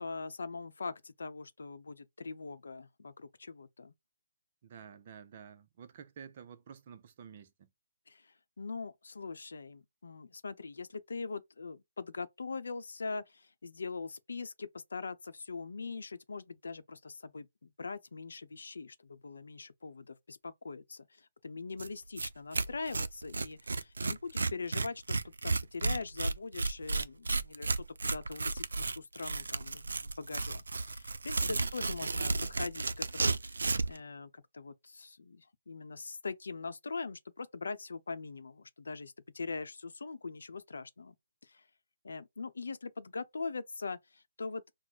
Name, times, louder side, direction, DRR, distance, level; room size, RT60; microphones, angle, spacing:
voice 1, 0.0-3.9 8.1-41.1 41.4-41.7 42.0-44.6, left 4 dB, 80° left, 0.7 m, -42 dB
voice 2, 4.6-7.7 31.6-31.7, right 7 dB, 35° right, 0.5 m, -51 dB
Tearing, 21.8-21.9 22.2-22.3 22.5-34.0, right 3 dB, 90° right, 0.4 m, -33 dB
4.6 x 2.1 x 4.1 m
hypercardioid pair, 165°, 0 cm